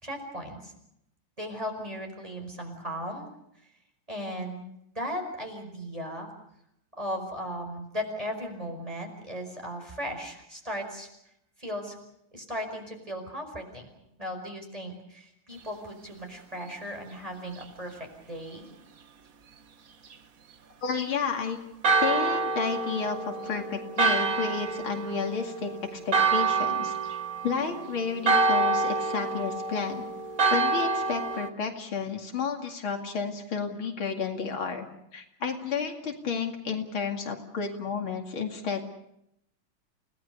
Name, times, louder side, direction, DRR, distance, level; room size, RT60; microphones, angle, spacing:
voice 1, 0.0-0.7 1.4-3.3 4.1-4.7 5.0-6.3 7.0-11.1 11.6-12.0 12.3-13.9 14.2-18.7, equal, 15° right, 3 dB, 5.2 m, -36 dB
voice 2, 20.8-21.6 22.0-27.0 27.4-30.1 30.5-34.9 35.1-38.8, left 5 dB, 75° left, 3 dB, 3.2 m, -31 dB
Church bell, 21.8-31.5, right 4 dB, 50° right, 1.4 m, -27 dB
30.0 x 18.0 x 6.9 m, 0.79 s
omnidirectional pair, 2.3 m